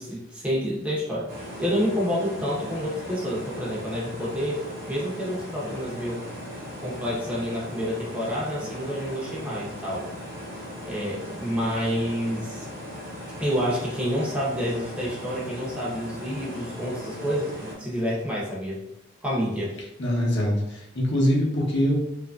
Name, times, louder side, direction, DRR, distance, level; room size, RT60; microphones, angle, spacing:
voice 1, 0.0-6.2 6.8-10.1 10.9-12.7 13.4-18.8 19.2-19.7, equal, 5° right, -6 dB, 0.7 m, -28 dB
sound 1, 1.3-17.7, equal, 45° right, 0.9 m, -38 dB
voice 2, 20.0-22.0, equal, 55° left, -3 dB, 0.8 m, -23 dB
2.9 x 2.5 x 2.3 m, 0.87 s
head